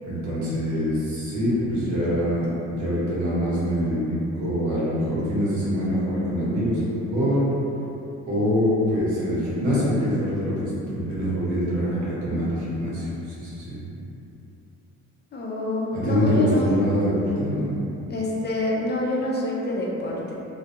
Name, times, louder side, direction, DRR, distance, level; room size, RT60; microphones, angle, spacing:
voice 1, 0.0-2.5 2.7-7.5 8.3-13.8 15.9-17.7, equal, 75° right, -9 dB, 1.1 m, -24 dB
voice 2, 15.3-16.7 18.1-20.3, left 1 dB, 35° left, -4 dB, 0.5 m, -26 dB
2.4 x 2.2 x 2.8 m, 2.8 s
cardioid pair, 90°, 30 cm